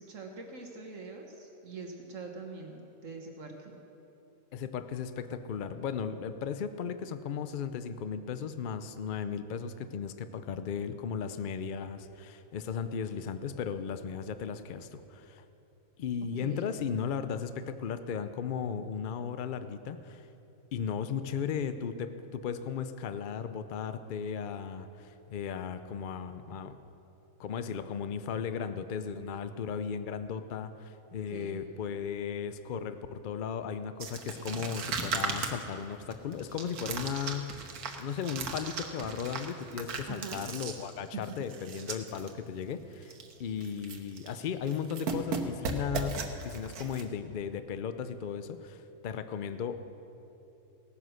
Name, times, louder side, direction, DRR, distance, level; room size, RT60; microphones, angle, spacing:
voice 1, 0.0-3.8 16.4-16.7 31.3-31.6 40.1-40.4 41.1-41.5, right 4 dB, 60° right, 2 dB, 1.4 m, -43 dB
voice 2, 4.5-15.4 16.0-20.3 20.7-26.8 27.4-49.8, left 7 dB, 90° left, 11 dB, 0.4 m, -36 dB
sound 1, 34.0-42.3 42.6-42.7 43.0-43.3 43.6-44.4 44.7-47.0, right 5 dB, 85° right, 1.5 m, -37 dB
17.5 x 9.3 x 6.3 m, 3.0 s
omnidirectional pair, 1.5 m